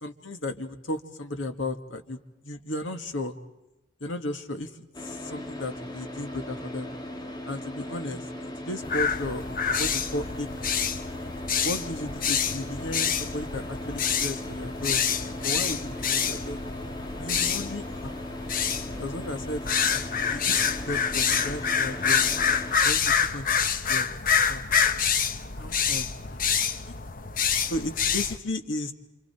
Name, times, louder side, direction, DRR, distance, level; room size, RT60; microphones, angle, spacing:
voice 1, 0.0-3.3 4.0-4.7 5.0-6.9 7.5-10.5 11.6-16.6 17.2-18.2 19.0-19.6 19.9-20.0 20.3-22.3 22.8-24.1 24.5-24.6 25.6-26.4 26.8-26.9 27.7-28.9, left 1 dB, 75° left, 6 dB, 1.9 m, -35 dB
Car / Idling, 4.9-22.8, left 1 dB, 20° left, 1.9 m, -38 dB
sound 1, 8.8-28.4, left 7 dB, 45° left, 1.0 m, -27 dB
28.5 x 27.0 x 4.4 m, 0.96 s
head